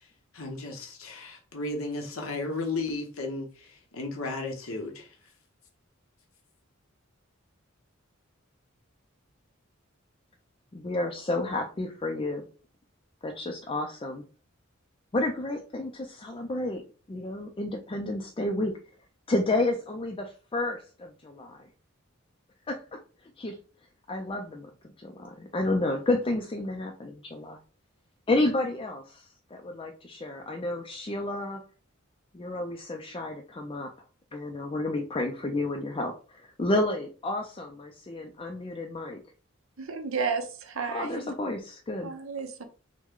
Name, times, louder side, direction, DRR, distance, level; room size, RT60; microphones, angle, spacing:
voice 1, 0.0-5.3, left 2 dB, 85° left, 2 dB, 0.9 m, -35 dB
voice 2, 10.7-12.4 13.2-14.2 15.1-16.8 17.1-18.7 19.3-21.7 22.7-23.0 23.4-23.6 24.1-24.7 25.0-27.6 28.3-31.6 32.3-33.9 34.3-39.2 40.9-42.1, left 2 dB, 25° left, 3 dB, 0.4 m, -31 dB
voice 3, 39.8-41.3 42.0-42.6, right 5 dB, 75° right, 6 dB, 0.8 m, -32 dB
6.1 x 2.2 x 3.7 m, 0.37 s
head